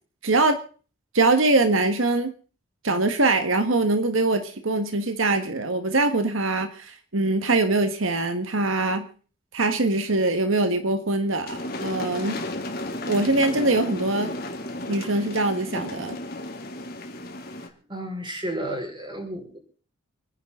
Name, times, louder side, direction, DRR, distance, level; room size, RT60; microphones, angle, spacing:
voice 1, 0.2-0.6 1.1-2.3 2.8-9.1 9.5-12.4 13.1-14.3 14.9-16.2, right 2 dB, 85° right, 8 dB, 1.6 m, -23 dB
sound 1, 11.5-17.7, left 1 dB, 50° left, 2.6 m, -33 dB
voice 2, 17.9-19.6, right 1 dB, 25° right, 2 dB, 5.5 m, -32 dB
28.0 x 10.5 x 3.8 m, 0.40 s
head